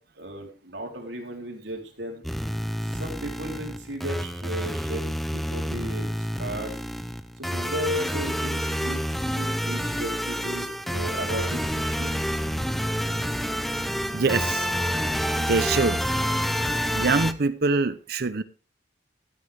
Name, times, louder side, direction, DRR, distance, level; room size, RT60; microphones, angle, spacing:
voice 1, 0.2-2.2 2.8-6.7 7.4-12.2, equal, 85° right, 3.6 m, -35 dB
sound 1, 2.2-17.3, equal, ahead, 0.6 m, -28 dB
voice 2, 14.1-14.7 15.5-16.0 16.9-18.4, right 3 dB, 60° right, 0.7 m, -24 dB
13.0 x 9.8 x 3.4 m
head